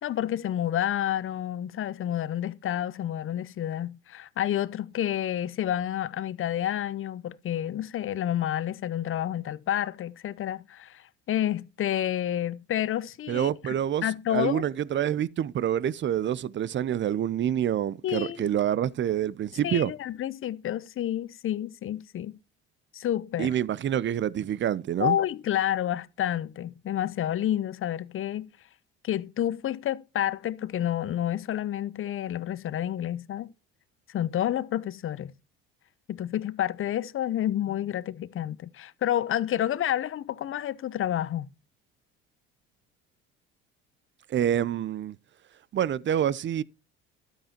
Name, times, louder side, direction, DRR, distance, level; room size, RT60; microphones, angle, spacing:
voice 1, 0.0-13.7 14.0-14.6 18.0-18.5 19.6-22.4 22.9-23.5 25.0-28.5 29.0-33.5 34.1-35.3 36.1-41.5, left 11 dB, 45° left, 0.7 m, -29 dB
voice 2, 13.3-14.0 14.3-19.9 23.4-25.2 44.3-45.2 45.7-46.6, right 10 dB, 40° right, 0.6 m, -27 dB
12.5 x 8.7 x 2.9 m
hypercardioid pair, 65°, 30 cm